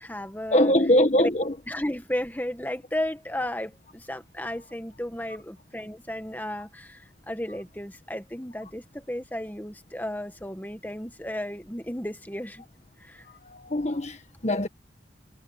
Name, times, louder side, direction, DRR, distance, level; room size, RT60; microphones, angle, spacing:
voice 1, 0.0-0.8 1.2-1.3 1.6-12.6 13.0-13.3, left 1 dB, 10° left, 1.7 m, -34 dB
voice 2, 0.5-1.5 13.3-14.7, left 1 dB, 35° left, 1.7 m, -23 dB
head